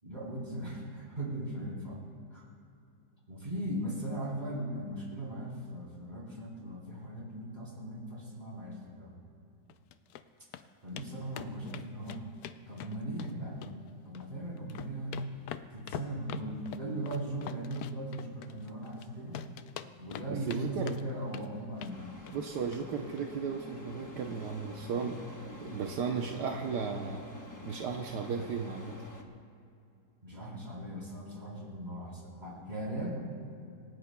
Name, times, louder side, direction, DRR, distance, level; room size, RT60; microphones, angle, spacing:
voice 1, 0.0-2.0 2.3-2.4 3.3-9.2 10.8-12.3 12.7-13.7 14.0-15.1 15.7-19.4 20.0-22.0 30.2-33.2, right 1 dB, 25° right, -4 dB, 3.8 m, -38 dB
sound 1, 9.7-10.2 10.5-10.6 11.0-11.1 11.3-13.3 13.6-14.3 14.6-19.0 19.3-20.6 20.9-21.5 21.8-22.0 22.3-22.4 22.7-22.8 23.1-23.2, left 10 dB, 70° left, 1.0 m, -43 dB
voice 2, 20.3-20.9 22.3-25.2 25.6-27.2 27.7-29.0, right 6 dB, 75° right, 2 dB, 1.4 m, -35 dB
sound 2, 21.9-29.2, left 2 dB, 15° left, 0.8 m, -48 dB
27.0 x 16.0 x 2.3 m, 2.6 s
omnidirectional pair, 1.8 m